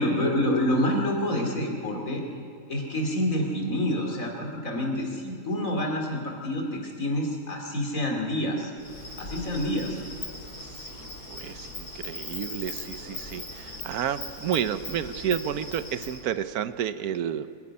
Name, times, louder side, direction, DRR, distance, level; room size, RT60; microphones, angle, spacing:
voice 1, 0.0-2.2 2.7-8.7 9.2-10.0, left 1 dB, 60° left, 1 dB, 3.1 m, -27 dB
Insect, 8.8-16.2, left 2 dB, 80° left, 4.0 m, -39 dB
voice 2, 10.8-17.5, right 9 dB, 75° right, 13 dB, 1.2 m, -31 dB
25.5 x 11.0 x 9.7 m, 2.3 s
omnidirectional pair, 1.6 m